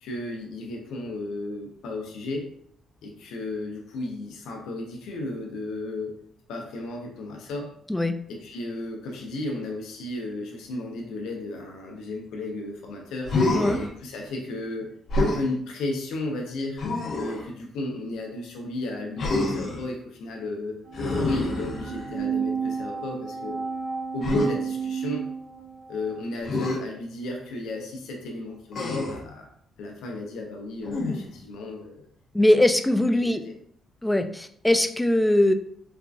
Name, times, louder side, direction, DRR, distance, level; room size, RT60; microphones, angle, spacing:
voice 1, 0.0-2.5 3.0-6.2 6.5-7.7 8.3-13.3 13.7-16.8 17.2-20.8 21.1-23.6 24.1-25.3 25.9-29.5 29.8-32.0 33.2-33.3, left 2 dB, 85° left, 1 dB, 0.8 m, -34 dB
Human voice, 13.2-13.9 15.1-15.5 16.8-17.4 19.2-19.8 20.9-22.2 24.2-24.5 26.4-26.8 28.7-29.3 30.8-31.4, left 2 dB, 60° left, 1.0 m, -26 dB
sound 1, 20.8-26.2, right 6 dB, 75° right, 0.7 m, -32 dB
voice 2, 32.3-33.4 34.0-35.5, left 1 dB, 10° left, 8 dB, 0.3 m, -21 dB
4.5 x 2.5 x 2.4 m, 0.66 s
cardioid pair, 90°, 0 cm